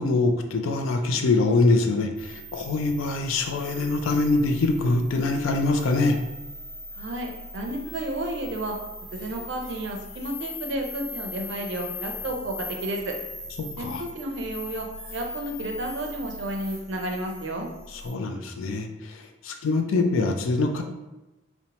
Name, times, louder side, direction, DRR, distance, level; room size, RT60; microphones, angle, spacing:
voice 1, 0.0-6.2 13.8-14.0 18.0-20.8, left 3 dB, 85° left, 5 dB, 0.4 m, -24 dB
sound 1, 2.2-18.1, left 2 dB, 60° left, 1.3 m, -40 dB
voice 2, 7.0-8.8 9.1-13.2 13.8-17.7, right 1 dB, 60° right, 2 dB, 0.4 m, -32 dB
2.8 x 2.1 x 2.8 m, 1.0 s
head